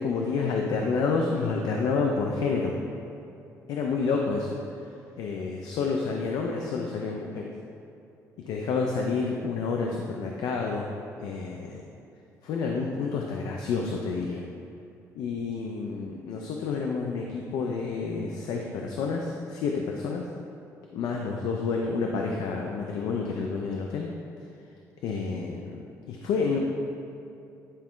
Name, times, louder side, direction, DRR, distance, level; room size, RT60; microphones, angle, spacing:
voice 1, 0.0-2.7 3.7-4.5 5.2-7.5 8.5-10.9 11.2-11.8 12.4-14.4 15.2-20.2 20.9-24.1 25.0-25.8 26.1-26.6, left 4 dB, 80° left, 1 dB, 0.6 m, -29 dB
10.0 x 3.7 x 4.5 m, 2.7 s
cardioid pair, 175°, 6 cm